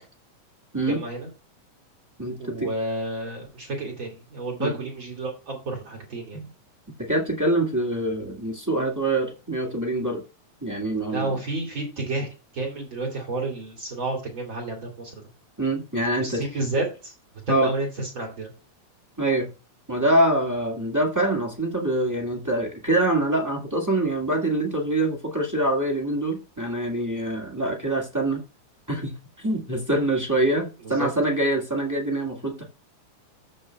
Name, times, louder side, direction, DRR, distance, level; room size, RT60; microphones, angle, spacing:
voice 1, 0.9-1.3 2.4-6.4 11.1-12.3 12.5-15.3 15.9-17.1 17.5-18.5 30.8-31.1, right 2 dB, 45° right, 2.7 m, -30 dB
voice 2, 2.2-2.7 4.6-4.7 6.3-6.4 7.0-10.2 10.6-11.4 15.6-16.5 17.5-17.7 19.2-19.5 19.9-28.4 28.9-32.6, right 1 dB, 10° right, 1.0 m, -25 dB
14.0 x 6.9 x 2.3 m
omnidirectional pair, 3.4 m